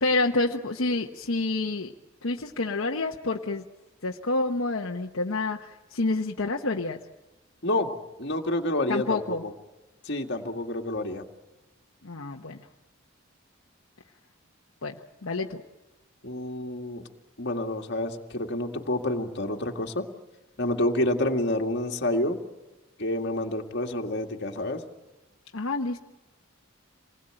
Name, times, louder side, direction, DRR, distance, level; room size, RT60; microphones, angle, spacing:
voice 1, 0.0-1.9 2.2-3.6 4.0-7.0 8.9-9.4 12.0-12.6 14.8-15.0 15.2-15.6 25.5-26.0, left 2 dB, 75° left, 2 dB, 1.1 m, -28 dB
voice 2, 8.2-9.5 10.0-11.2 16.2-17.0 17.4-20.1 20.6-22.4 23.0-24.8, left 1 dB, 55° left, 3 dB, 2.1 m, -28 dB
27.0 x 20.5 x 9.0 m, 1.1 s
head